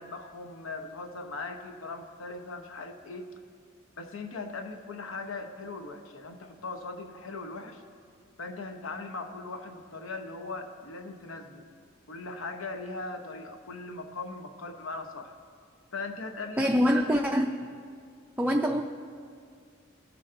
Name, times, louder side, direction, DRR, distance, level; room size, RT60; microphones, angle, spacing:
voice 1, 0.0-3.3 4.0-7.8 8.4-11.7 12.1-15.3 15.9-16.7 17.1-17.2, left 3 dB, 80° left, 6 dB, 0.8 m, -39 dB
voice 2, 16.6-17.8 18.4-18.8, equal, 10° right, 1 dB, 0.3 m, -25 dB
20.5 x 7.0 x 2.5 m, 2.2 s
head